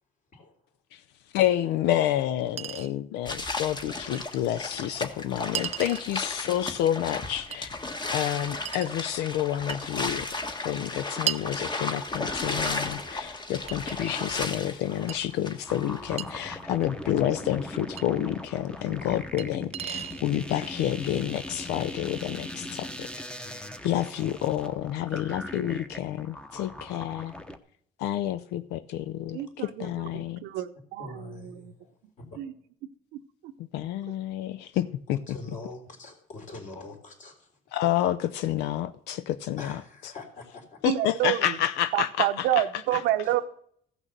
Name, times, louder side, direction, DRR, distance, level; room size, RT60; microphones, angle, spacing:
voice 1, 1.3-7.7 8.1-10.3 10.6-23.1 23.8-27.3 28.0-30.4 33.7-35.2 37.7-39.7 40.8-42.3, left 12 dB, 85° left, 0.5 m, -29 dB
Chink clink, 1.6-1.7 2.6-2.9 4.1-4.2 5.6-6.1 7.5-7.6 8.7-8.9 9.7-9.9 11.3-11.5 12.7-12.8 13.7-14.4 15.1-15.2 16.2-16.3 18.0-18.1 19.4-19.5 19.7-20.2, right 11 dB, 40° right, 0.4 m, -34 dB
sound 1, 3.3-16.2, left 2 dB, 25° left, 1.3 m, -34 dB
sound 2, 15.7-27.6, left 1 dB, 5° left, 0.9 m, -40 dB
voice 2, 29.3-31.7 32.4-32.5 33.1-33.5 40.9-41.6 41.9-43.4, right 13 dB, 85° right, 0.8 m, -29 dB
voice 3, 31.0-32.2 35.1-37.6 37.9-38.0 39.6-40.9 41.2-41.4 42.9-43.0 43.2-43.4, left 3 dB, 50° left, 3.6 m, -44 dB
15.0 x 6.2 x 6.6 m
cardioid pair, 110°, 17 cm